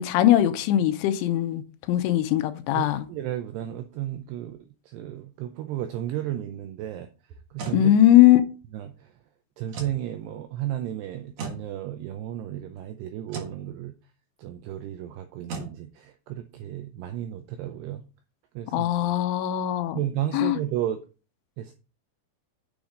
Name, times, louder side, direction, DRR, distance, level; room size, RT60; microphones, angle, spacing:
voice 1, 0.0-3.0 7.7-8.4 18.7-20.0 20.3-20.6, left 13 dB, 90° left, 3.1 m, -20 dB
voice 2, 2.7-7.1 7.5-7.9 8.7-9.1 9.6-13.9 14.4-18.0 18.6-18.9 20.0-21.0 21.6-21.7, right 12 dB, 90° right, 2.4 m, -33 dB
sound 1, 7.3-7.8 9.7-10.0 11.4-11.6 13.3-13.6 15.5-15.7, right 4 dB, 60° right, 2.2 m, -35 dB
7.8 x 7.1 x 3.8 m
omnidirectional pair, 5.6 m